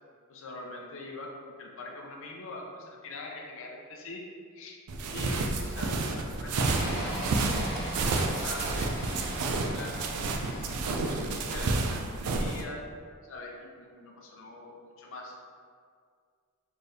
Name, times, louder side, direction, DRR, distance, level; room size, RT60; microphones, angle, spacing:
voice 1, 0.3-4.2 4.5-4.8 5.1-7.7 8.0-12.9 13.2-15.4, left 2 dB, 60° left, 0 dB, 0.6 m, -44 dB
sound 1, 4.9-12.6, right 3 dB, 90° right, 0.4 m, -30 dB
sound 2, 6.6-11.7, right 1 dB, 5° right, 1.0 m, -38 dB
4.4 x 3.3 x 3.2 m, 2.1 s
head